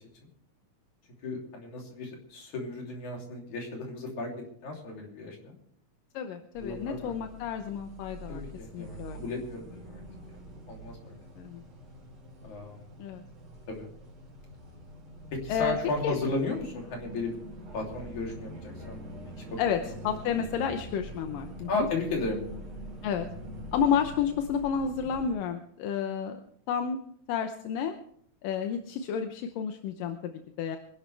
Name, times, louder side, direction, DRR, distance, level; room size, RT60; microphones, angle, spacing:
voice 1, 1.2-4.3 4.6-5.5 6.6-7.2 8.3-10.0 10.7-11.2 12.4-12.8 13.7-13.9 15.3-17.4 17.7-19.0 19.4-19.5 21.7-22.4, left 3 dB, 60° left, 0 dB, 4.4 m, -34 dB
voice 2, 6.1-8.4 8.7-9.2 11.4-11.6 13.0-13.2 15.5-15.8 16.0-16.2 19.6-21.9 23.0-23.3 23.7-26.4 26.7-27.0 27.3-27.9 28.4-30.8, left 7 dB, 85° left, 6 dB, 2.6 m, -31 dB
sound 1, 6.5-25.3, right 1 dB, 50° right, 4.1 m, -44 dB
25.0 x 11.0 x 3.4 m, 0.65 s
omnidirectional pair, 3.8 m